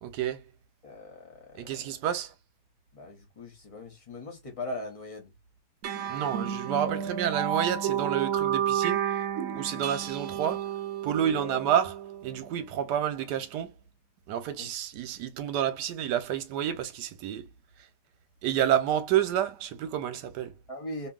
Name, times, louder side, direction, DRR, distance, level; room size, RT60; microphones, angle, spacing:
voice 1, 0.0-0.4 1.5-2.3 6.1-9.2 9.5-10.7 11.0-11.9 12.2-13.7 14.3-17.5 18.4-20.5, right 10 dB, 85° right, 1.2 m, -29 dB
voice 2, 0.8-1.7 2.9-5.3 11.4-11.6 14.6-14.7 20.7-21.1, left 1 dB, 40° left, 0.5 m, -40 dB
sound 1, 5.8-12.7, right 9 dB, 70° right, 0.9 m, -31 dB
2.7 x 2.6 x 2.3 m
omnidirectional pair, 1.8 m